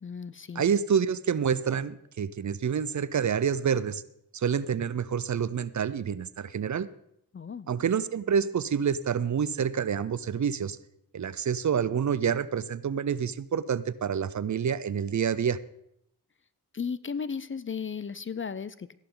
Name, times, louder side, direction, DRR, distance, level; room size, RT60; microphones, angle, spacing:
voice 1, 0.0-0.6 7.3-7.7 16.7-18.9, left 6 dB, 30° left, 17 dB, 0.5 m, -35 dB
voice 2, 0.6-4.0 4.3-6.9 7.7-10.8 11.1-15.6, right 7 dB, 50° right, 17 dB, 0.6 m, -28 dB
14.0 x 11.0 x 3.9 m, 0.77 s
cardioid pair, 45°, 38 cm